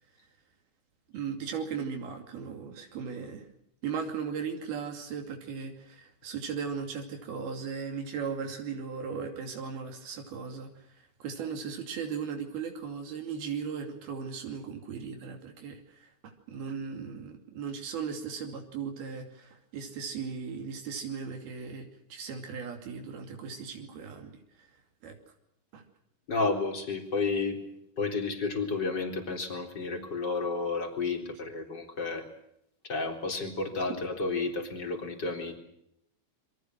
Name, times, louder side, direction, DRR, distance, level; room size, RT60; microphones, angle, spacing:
voice 1, 1.1-3.5 3.8-10.7 10.9-24.3 25.0-25.2 25.7-25.8, right 6 dB, 80° right, 3 dB, 4.6 m, -37 dB
voice 2, 26.3-27.6 28.0-32.3 32.8-35.6, left 3 dB, 30° left, 3 dB, 4.3 m, -31 dB
28.0 x 24.0 x 6.2 m, 0.76 s
omnidirectional pair, 4.3 m